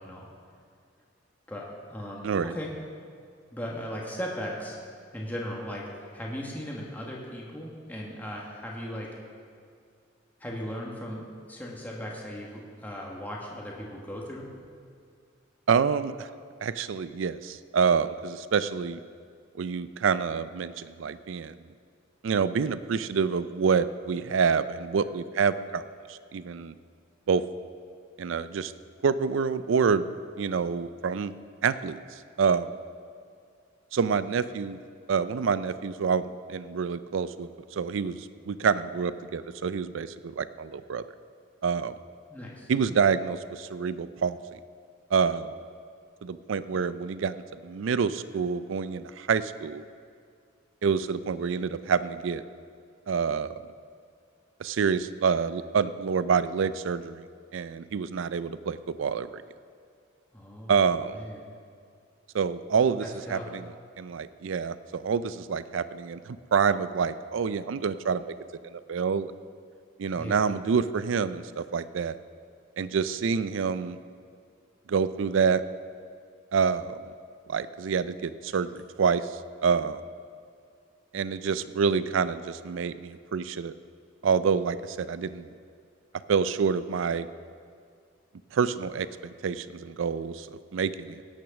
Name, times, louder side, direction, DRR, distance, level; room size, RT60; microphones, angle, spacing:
voice 1, 1.5-2.7 3.5-4.8 5.1-5.9 6.1-9.1 10.4-14.4 42.3-42.7 60.3-60.8 61.1-61.5 63.3-63.4 70.2-70.4, equal, 10° left, -3 dB, 1.4 m, -37 dB
voice 2, 15.7-16.3 16.6-19.0 19.6-21.6 22.2-25.8 26.1-26.7 27.3-27.4 28.2-28.7 29.0-30.1 30.4-31.3 31.6-32.0 32.4-32.7 33.9-34.8 35.1-36.2 36.5-41.0 41.6-41.9 42.7-44.4 45.1-45.6 46.2-49.8 50.8-52.4 53.1-53.6 54.6-57.3 57.5-59.4 60.7-61.2 62.3-63.7 64.0-68.3 68.6-69.3 70.0-72.2 72.8-74.0 74.9-75.6 76.5-77.0 77.5-80.0 81.1-83.7 84.2-85.5 86.3-87.3 88.5-91.2, right 6 dB, 75° right, 14 dB, 0.4 m, -27 dB
16.5 x 6.2 x 5.9 m, 2.3 s
head